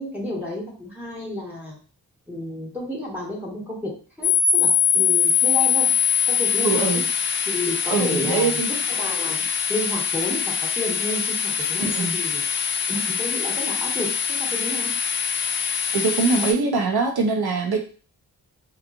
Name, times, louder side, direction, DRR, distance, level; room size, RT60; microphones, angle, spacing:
voice 1, 0.0-1.8 2.3-5.9 6.3-7.0 7.5-12.4 12.9-14.9, left 1 dB, 5° right, -5 dB, 1.2 m, -31 dB
sound 1, 4.2-16.5, left 7 dB, 30° left, 0.9 m, -23 dB
voice 2, 6.6-7.0 7.9-8.7 11.8-12.1 15.9-17.8, right 4 dB, 70° right, 3 dB, 0.7 m, -22 dB
3.0 x 2.4 x 2.4 m, 0.38 s
cardioid pair, 45°, 39 cm